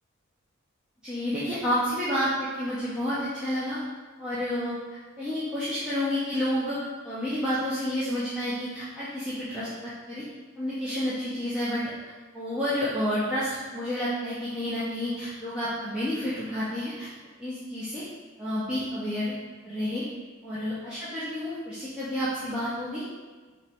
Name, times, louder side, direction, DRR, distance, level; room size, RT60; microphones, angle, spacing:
voice 1, 1.0-3.8 4.2-10.2 10.6-11.9 12.3-17.1 17.4-18.0 18.4-19.3 19.6-20.0 20.4-23.0, equal, 5° right, -12 dB, 0.4 m, -30 dB
2.9 x 2.2 x 4.1 m, 1.4 s
head